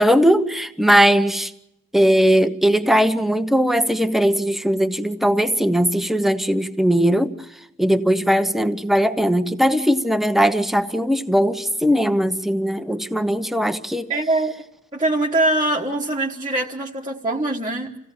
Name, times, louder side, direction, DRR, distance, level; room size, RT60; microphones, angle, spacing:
voice 1, 0.0-1.5 1.9-7.3 7.8-14.1, equal, ahead, 0.9 m, -19 dB
voice 2, 14.1-14.5 14.9-18.0, right 2 dB, 20° right, 1.4 m, -22 dB
27.5 x 16.5 x 7.1 m
head